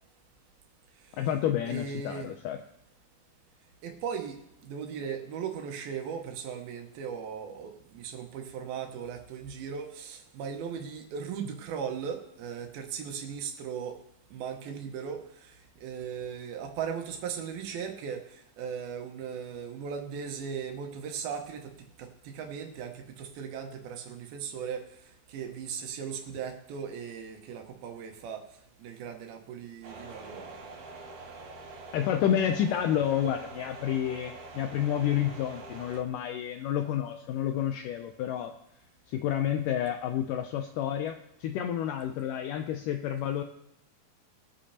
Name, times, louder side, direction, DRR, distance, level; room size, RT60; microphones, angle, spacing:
voice 1, 1.2-2.6 31.9-38.5 39.1-43.4, left 10 dB, 85° left, 6 dB, 1.9 m, -29 dB
voice 2, 1.7-2.3 3.8-4.4 4.6-14.0 14.3-21.7 22.0-28.5 28.8-30.6, right 7 dB, 85° right, 4 dB, 2.9 m, -38 dB
sound 1, 29.8-36.0, right 3 dB, 65° right, 2.5 m, -45 dB
20.5 x 8.6 x 2.9 m, 0.79 s
omnidirectional pair, 4.3 m